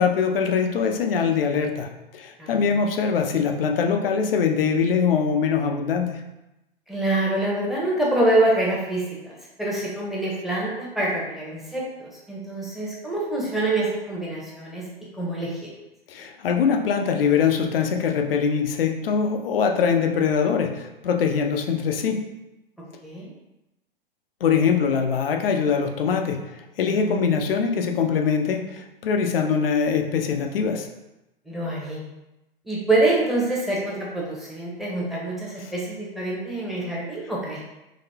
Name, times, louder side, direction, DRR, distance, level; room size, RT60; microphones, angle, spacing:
voice 1, 0.0-6.2 16.1-22.3 24.4-30.9, left 6 dB, 70° left, 4 dB, 0.6 m, -23 dB
voice 2, 2.4-2.9 6.9-14.9 15.1-15.7 23.0-23.3 26.8-27.3 31.5-32.0 32.6-37.7, right 2 dB, ahead, -5 dB, 0.9 m, -26 dB
4.0 x 2.8 x 2.7 m, 0.95 s
hypercardioid pair, 110°, 29 cm